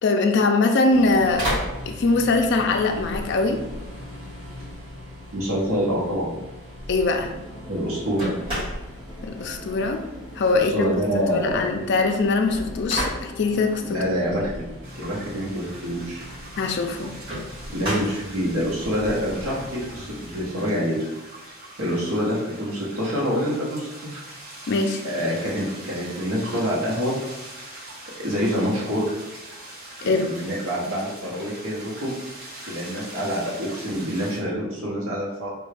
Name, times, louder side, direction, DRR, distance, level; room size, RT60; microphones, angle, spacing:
voice 1, 0.0-1.6 1.9-3.6 6.9-7.3 9.3-10.0 10.4-10.9 11.3-14.0 16.6-17.1 24.7-25.0 30.0-30.3, left 3 dB, 50° left, 5 dB, 0.3 m, -22 dB
sound 1, 0.9-20.5, equal, 25° right, 1.4 m, -36 dB
voice 2, 5.3-6.3 7.7-8.3 10.5-11.8 13.8-14.6 15.0-16.2 17.7-21.0 21.8-24.2 25.0-27.1 28.2-29.1 30.0-32.1 32.7-35.5, equal, 70° right, -4 dB, 0.9 m, -26 dB
sound 2, 7.2-14.3, equal, 5° left, 0.6 m, -43 dB
sound 3, 14.8-34.4, right 1 dB, 40° right, 0.8 m, -42 dB
3.3 x 2.3 x 3.3 m, 1.0 s
head